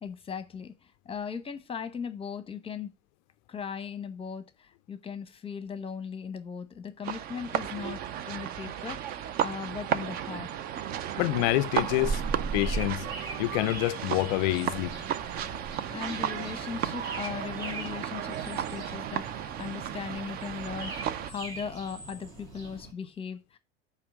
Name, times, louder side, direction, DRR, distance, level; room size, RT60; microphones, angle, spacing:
voice 1, 0.0-0.7 1.0-2.9 3.5-8.0 8.3-10.5 15.9-23.6, left 6 dB, 15° left, 0.9 m, -38 dB
sound 1, 7.0-21.3, right 10 dB, 25° right, 0.4 m, -34 dB
voice 2, 11.2-12.2 12.5-13.1 13.4-14.9, left 19 dB, 40° left, 0.4 m, -27 dB
sound 2, 11.7-22.9, right 3 dB, 45° right, 2.7 m, -39 dB
7.6 x 3.0 x 6.2 m
figure-of-eight pair, 80°, 35 cm